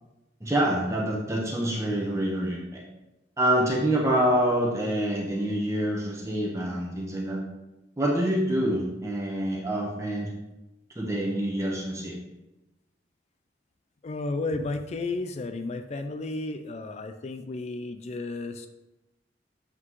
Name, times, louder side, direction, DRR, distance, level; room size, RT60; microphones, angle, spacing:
voice 1, 0.4-2.8 3.4-7.4 8.0-10.3 10.9-12.1, right 1 dB, 15° right, -3 dB, 1.1 m, -26 dB
voice 2, 14.0-18.7, left 2 dB, 35° left, 8 dB, 0.4 m, -33 dB
7.7 x 6.0 x 3.1 m, 0.98 s
head